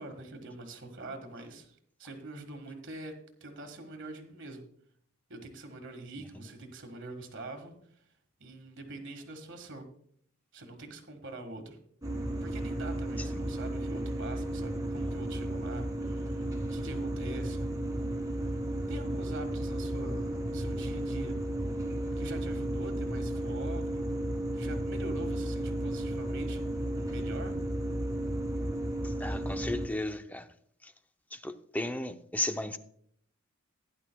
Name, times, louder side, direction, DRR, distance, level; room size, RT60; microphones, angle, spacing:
voice 1, 0.0-4.6 5.3-7.7 8.4-9.8 10.5-11.8 12.4-17.7 18.9-21.4 22.2-24.1 24.5-26.6 27.1-27.6, right 2 dB, 55° right, 1.7 m, -44 dB
sound 1, 12.0-29.9, right 1 dB, 15° right, 1.8 m, -33 dB
voice 2, 29.0-30.5 30.8-30.9 31.3-32.8, left 2 dB, 5° left, 0.5 m, -35 dB
16.0 x 10.5 x 2.3 m
head